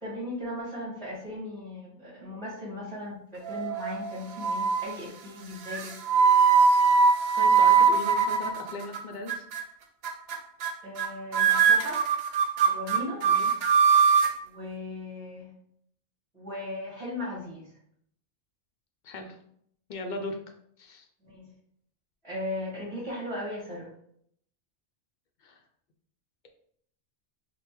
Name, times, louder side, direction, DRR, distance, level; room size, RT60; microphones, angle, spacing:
voice 1, 0.0-5.9 10.8-12.0 12.6-13.3 14.4-15.5 16.3-17.7 21.2-21.5 22.2-23.9, left 1 dB, 5° left, -7 dB, 1.3 m, -37 dB
sound 1, 3.5-4.0 4.4-4.9 5.7-9.0 9.3-9.6 10.0-10.4 10.6-10.7 11.0-11.1 11.3-14.3, right 6 dB, 70° right, 0.8 m, -22 dB
voice 2, 7.4-9.4 13.2-13.5 19.0-19.4 19.9-20.4 20.8-21.1 25.4-25.5, left 2 dB, 55° left, 4 dB, 0.6 m, -37 dB
5.2 x 2.1 x 3.0 m, 0.67 s
omnidirectional pair, 1.1 m